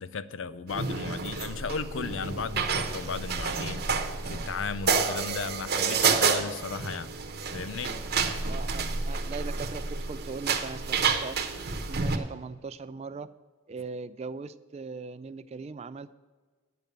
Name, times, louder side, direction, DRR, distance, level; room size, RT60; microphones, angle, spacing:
voice 1, 0.0-3.9 4.3-7.1 7.5-8.0, left 5 dB, 70° left, 15 dB, 0.5 m, -35 dB
sound 1, 0.7-12.2, right 5 dB, 50° right, 0.9 m, -29 dB
voice 2, 8.5-11.4 11.9-13.3 13.7-16.1, right 4 dB, 30° right, 14 dB, 0.3 m, -39 dB
9.2 x 6.7 x 7.2 m, 1.4 s
head